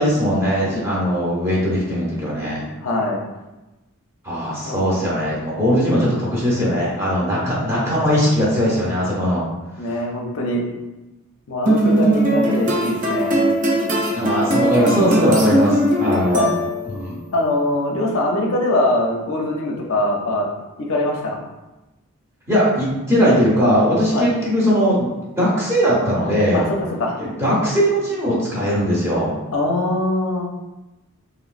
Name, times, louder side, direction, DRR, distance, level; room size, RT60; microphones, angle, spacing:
voice 1, 0.0-2.6 4.2-9.4 14.1-16.4 16.9-17.2 22.5-26.7 27.2-29.4, equal, 10° right, -7 dB, 0.8 m, -19 dB
voice 2, 2.8-3.2 4.6-4.9 7.7-7.9 9.8-10.6 11.5-13.5 15.5-15.6 16.3-16.5 17.3-20.5 20.8-21.4 23.7-23.8 24.1-24.3 26.5-27.2 29.5-30.4, left 1 dB, 65° left, -1 dB, 0.5 m, -22 dB
sound 1, 11.7-17.0, right 1 dB, 35° right, 0.5 m, -19 dB
3.0 x 2.9 x 2.4 m, 1.0 s
head